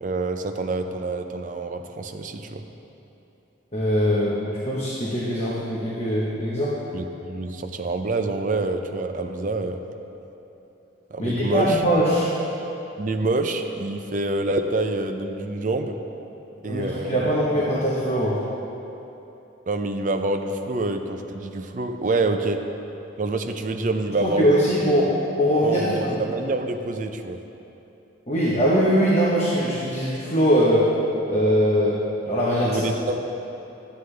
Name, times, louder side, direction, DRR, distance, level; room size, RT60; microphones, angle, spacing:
voice 1, 0.0-2.6 6.9-9.8 11.1-11.8 13.0-16.0 16.6-17.4 17.7-17.8 19.7-22.6 23.2-24.5 25.6-27.4 32.6-33.2, right 2 dB, 40° right, 6 dB, 0.5 m, -27 dB
voice 2, 3.7-6.7 11.2-12.3 16.6-18.3 24.2-25.1 25.4-26.2 28.3-30.9 31.3-31.9 32.3-32.9, equal, 30° left, -7 dB, 1.1 m, -21 dB
11.5 x 9.2 x 3.3 m, 3.0 s
head